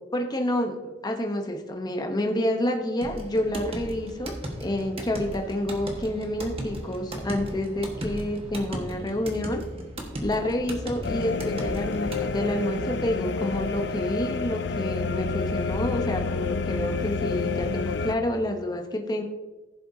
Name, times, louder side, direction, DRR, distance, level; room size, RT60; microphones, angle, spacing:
voice 1, 0.1-9.6 10.2-19.2, left 1 dB, 25° left, 3 dB, 0.9 m, -29 dB
sound 1, 3.0-12.3, right 1 dB, 35° right, 1.5 m, -36 dB
sound 2, 11.0-18.1, left 4 dB, 65° left, 0.5 m, -29 dB
15.0 x 7.6 x 2.8 m, 1.1 s
head